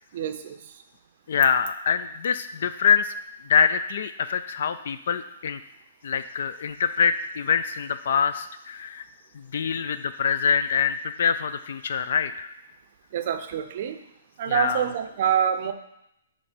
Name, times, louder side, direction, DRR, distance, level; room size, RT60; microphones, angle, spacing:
voice 1, 0.1-0.6 13.1-14.0 14.4-15.7, right 9 dB, 40° right, 8 dB, 0.5 m, -26 dB
voice 2, 1.3-3.1 3.5-5.6 6.0-9.0 9.3-12.5 14.5-14.9, left 7 dB, 55° left, 11 dB, 0.3 m, -25 dB
8.8 x 3.1 x 4.4 m, 0.80 s
hypercardioid pair, 170°, 0 cm